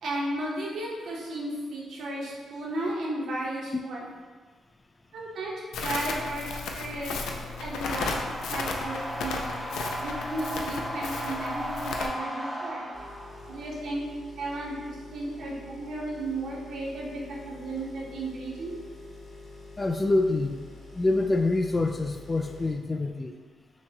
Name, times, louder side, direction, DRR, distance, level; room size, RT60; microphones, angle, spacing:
voice 1, 0.0-4.1 5.1-6.5 6.7-7.2 7.6-8.1 8.5-9.6 10.0-12.9 13.5-14.0 14.4-18.7, right 1 dB, 75° right, -4 dB, 1.0 m, -34 dB
Crackle, 5.7-12.1, left 4 dB, 90° left, 0.4 m, -34 dB
sound 1, 6.8-13.8, equal, 5° left, 1.1 m, -36 dB
sound 2, 12.9-22.7, left 2 dB, 45° left, 0.9 m, -47 dB
voice 2, 19.8-20.7 20.9-23.3, left 2 dB, 25° left, 5 dB, 0.3 m, -26 dB
5.9 x 2.3 x 2.9 m, 1.4 s
cardioid pair, 105°, 0 cm